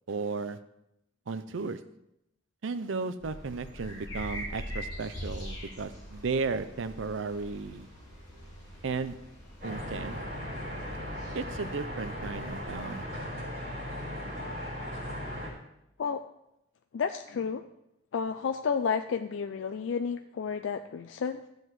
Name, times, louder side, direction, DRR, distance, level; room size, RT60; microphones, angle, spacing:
voice 1, 0.1-0.6 1.3-1.8 2.6-7.9 8.8-9.2 9.6-10.2 11.3-13.0, right 4 dB, 75° right, 12 dB, 0.6 m, -34 dB
sound 1, 3.2-13.2, equal, 20° left, 4.4 m, -43 dB
sound 2, 9.6-15.5, equal, 45° right, 4.4 m, -37 dB
voice 2, 16.9-17.6 18.1-21.4, left 6 dB, 70° left, 7 dB, 0.4 m, -31 dB
14.5 x 7.8 x 3.1 m, 0.85 s
head